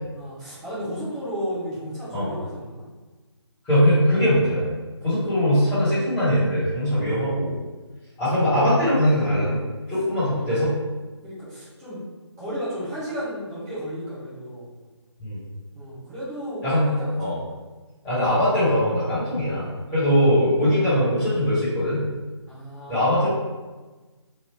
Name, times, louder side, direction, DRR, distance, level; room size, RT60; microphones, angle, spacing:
voice 1, 0.1-2.8 5.0-5.4 6.9-7.3 11.2-12.0 12.4-14.7 15.7-17.4 22.5-23.3, equal, 10° right, -11 dB, 0.5 m, -34 dB
voice 2, 3.7-4.7 5.0-7.6 8.2-9.6 9.9-10.7 15.2-15.4 16.6-16.9 17.2-17.3 18.0-22.0 22.9-23.3, equal, 10° left, -15 dB, 1.2 m, -21 dB
3.1 x 2.3 x 3.3 m, 1.3 s
figure-of-eight pair, 160°, 15 cm